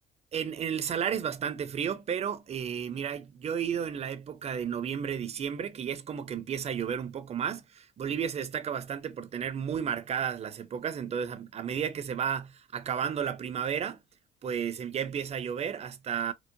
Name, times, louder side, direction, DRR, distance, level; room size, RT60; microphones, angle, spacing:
voice 1, 0.3-14.0 14.4-16.3, right 8 dB, 40° right, 0.6 m, -33 dB
4.6 x 2.0 x 2.6 m
cardioid pair, 110°, 17 cm